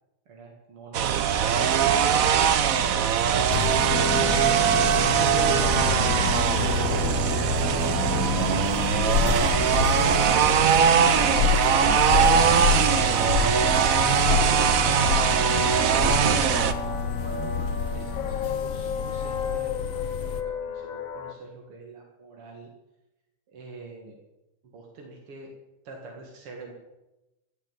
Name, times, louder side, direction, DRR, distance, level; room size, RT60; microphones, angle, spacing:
voice 1, 0.3-1.7 3.1-3.5 4.3-4.7 5.1-6.2 6.9-11.1 11.6-11.9 12.3-16.3 17.0-22.7 23.5-24.2 24.6-25.5 25.8-26.7, right 3 dB, 90° right, 0 dB, 3.0 m, -42 dB
sound 1, 0.9-16.7, right 8 dB, 65° right, 0.8 m, -21 dB
sound 2, 3.5-20.4, left 7 dB, 75° left, 1.8 m, -29 dB
sound 3, 3.9-21.3, left 6 dB, 50° left, 1.1 m, -34 dB
16.0 x 6.9 x 9.1 m, 0.98 s
omnidirectional pair, 2.4 m